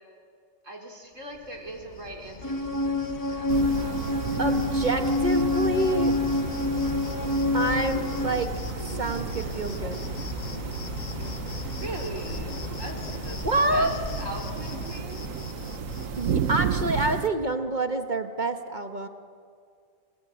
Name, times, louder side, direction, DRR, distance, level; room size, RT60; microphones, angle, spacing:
voice 1, 0.6-3.0 3.2-3.9 11.8-15.3, right 2 dB, 75° right, 1 dB, 3.9 m, -40 dB
Cricket, 1.3-17.0, left 4 dB, 40° left, 1.1 m, -38 dB
sound 1, 2.4-8.3, left 2 dB, 15° left, 1.0 m, -27 dB
sound 2, 3.5-17.3, right 8 dB, 90° right, 1.3 m, -33 dB
voice 2, 4.4-6.1 7.5-8.5 9.0-10.0 13.4-13.9 16.2-19.1, right 2 dB, 35° right, 7 dB, 1.3 m, -27 dB
29.0 x 20.0 x 8.9 m, 2.2 s
omnidirectional pair, 1.3 m